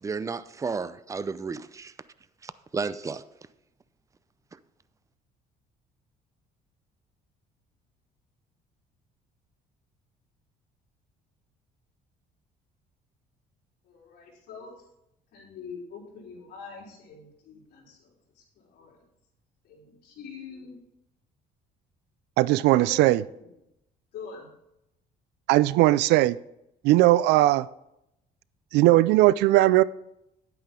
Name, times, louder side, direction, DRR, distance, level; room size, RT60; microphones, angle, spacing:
voice 1, 0.0-1.9 2.4-3.2, right 4 dB, 20° right, 14 dB, 0.5 m, -32 dB
voice 2, 13.8-14.7 15.3-18.0 18.7-18.9 19.6-20.7 22.8-23.0 23.4-23.5 24.1-24.5, left 5 dB, 75° left, -4 dB, 4.1 m, -44 dB
voice 3, 22.4-23.2 25.5-26.4 26.8-27.7 28.7-29.8, right 17 dB, 90° right, 19 dB, 0.4 m, -19 dB
10.0 x 9.0 x 3.7 m, 0.83 s
cardioid pair, 110°, 17 cm